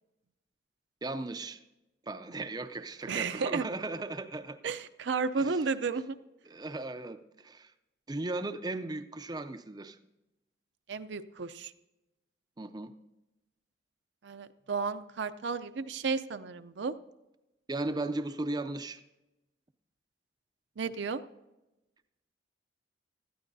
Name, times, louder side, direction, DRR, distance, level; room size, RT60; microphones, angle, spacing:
voice 1, 1.0-1.6 2.1-4.6 5.4-5.7 6.5-7.7 8.1-10.0 12.6-12.9 17.7-19.0, right 2 dB, 20° right, 9 dB, 0.4 m, -36 dB
voice 2, 3.1-3.6 4.6-6.2 10.9-11.7 14.2-16.9 20.8-21.2, right 4 dB, 70° right, 10 dB, 0.5 m, -33 dB
19.0 x 13.5 x 2.7 m, 0.99 s
head